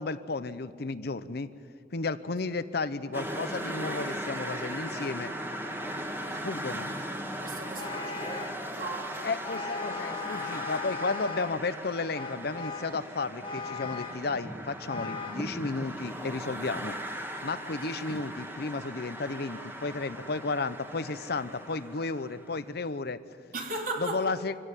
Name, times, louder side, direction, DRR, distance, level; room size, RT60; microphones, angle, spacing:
voice 1, 0.0-1.5 1.9-5.3 6.4-6.9 9.2-17.0 17.4-23.2 24.0-24.6, left 3 dB, 65° left, 13 dB, 0.8 m, -33 dB
sound 1, 3.1-22.7, right 1 dB, 15° right, 1.7 m, -38 dB
voice 2, 7.4-9.3 23.5-24.2, right 2 dB, 55° right, 1 dB, 3.3 m, -37 dB
Vehicle horn car horn honking, 7.8-8.7 9.4-11.6 12.1-13.0 13.4-14.3 14.9-15.5, left 5 dB, 30° left, 1.2 m, -38 dB
24.0 x 16.5 x 9.2 m, 2.2 s
head